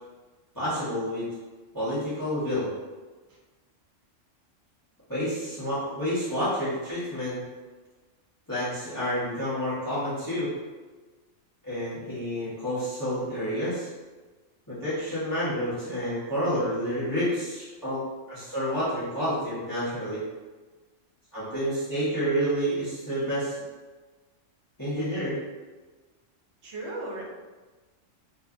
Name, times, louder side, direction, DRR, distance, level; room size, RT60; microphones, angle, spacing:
voice 1, 0.5-1.3 1.7-2.7 5.1-7.4 8.5-10.5 11.6-13.9 14.7-18.0 18.3-20.2 21.3-23.6 24.8-25.4, equal, 20° left, -13 dB, 0.9 m, -29 dB
voice 2, 26.6-27.2, right 2 dB, 65° right, -3 dB, 0.9 m, -36 dB
2.7 x 2.4 x 2.3 m, 1.3 s
omnidirectional pair, 1.3 m